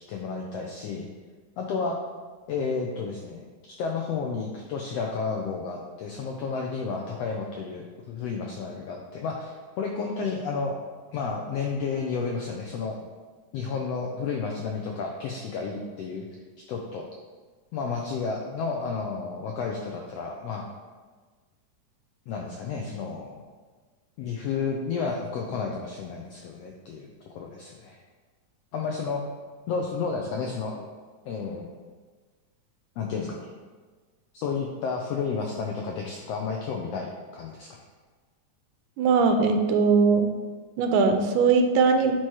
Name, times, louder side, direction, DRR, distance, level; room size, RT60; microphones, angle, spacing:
voice 1, 0.1-1.1 1.6-2.0 2.5-3.4 3.8-10.8 11.1-13.0 13.5-16.3 16.7-17.1 17.7-20.6 22.3-23.4 24.2-28.0 28.7-29.3 29.7-30.8 31.3-31.7 33.0-33.5 34.3-37.7, left 5 dB, 85° left, 0 dB, 1.4 m, -31 dB
voice 2, 39.0-40.4 40.8-42.1, right 4 dB, 85° right, 5 dB, 2.1 m, -20 dB
8.8 x 3.1 x 4.7 m, 1.4 s
omnidirectional pair, 3.6 m